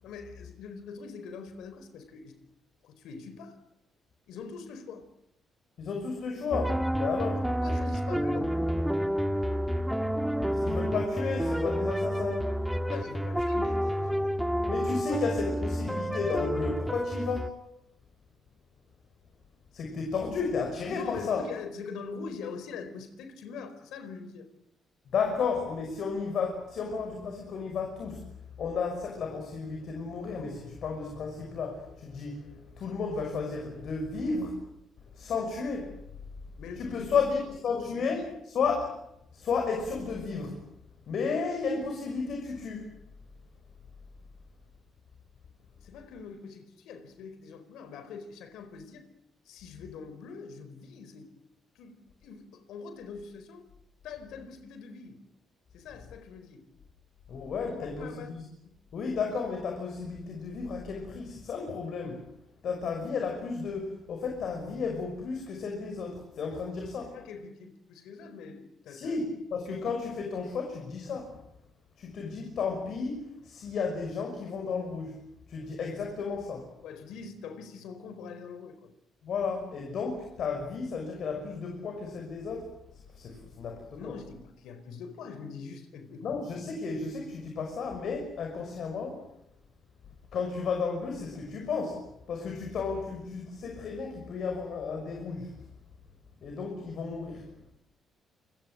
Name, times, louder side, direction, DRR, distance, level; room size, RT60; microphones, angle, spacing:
voice 1, 0.0-2.4 2.8-3.6 4.3-5.1 7.2-8.7 12.9-14.3 15.1-15.6 20.9-24.5 36.6-37.2 37.7-38.3 45.8-49.1 49.4-51.3 51.7-53.6 54.0-55.2 55.7-56.6 57.6-58.4 58.6-58.7 67.0-69.2 76.8-78.9 83.9-86.4, left 5 dB, 85° left, 4.5 m, -43 dB
voice 2, 5.8-7.5 10.4-12.6 14.7-17.7 19.7-21.5 25.1-28.3 28.6-34.7 35.1-36.0 36.8-38.3 38.5-39.0 39.3-40.6 41.1-43.0 57.3-58.4 58.9-62.3 62.6-67.2 68.9-71.4 72.0-76.7 79.2-82.8 83.1-84.2 86.2-89.3 90.3-95.5 96.4-97.5, left 5 dB, 65° left, 6.1 m, -33 dB
sound 1, 6.5-17.5, equal, 5° right, 1.4 m, -29 dB
28.0 x 24.0 x 7.8 m
cardioid pair, 90°, 0 cm